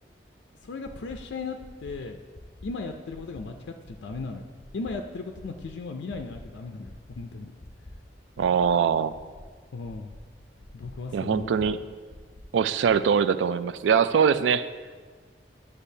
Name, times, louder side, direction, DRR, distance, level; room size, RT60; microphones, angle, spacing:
voice 1, 0.6-2.2 2.6-4.5 4.7-7.5 9.7-10.1 10.7-11.8, left 3 dB, 80° left, 4 dB, 0.4 m, -36 dB
sound 1, 0.8-1.2 1.6-1.9 2.3-2.7 3.1-3.4 3.8-4.2 4.6-4.9 5.3-5.7 6.1-6.4 6.8-7.2 7.6-7.9 8.3-8.7 9.1-9.4 9.8-10.2 10.6-10.9 11.3-11.7 12.1-12.4 12.8-12.9, left 2 dB, 35° left, 0.7 m, -47 dB
voice 2, 8.4-9.1 11.1-11.8 12.5-14.7, right 7 dB, 85° right, 14 dB, 0.3 m, -22 dB
9.9 x 6.7 x 2.7 m, 1.5 s
head